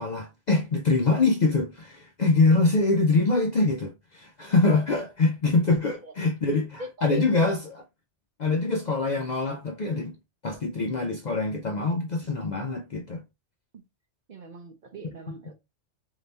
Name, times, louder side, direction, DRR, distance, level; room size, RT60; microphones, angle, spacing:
voice 1, 0.0-7.6 8.4-10.2 10.4-13.2, left 3 dB, 55° left, 0.5 m, -24 dB
voice 2, 5.8-6.1 6.8-7.5 13.7-13.8 14.3-15.5, right 1 dB, 50° right, 0.7 m, -41 dB
3.3 x 2.8 x 4.0 m
omnidirectional pair, 1.2 m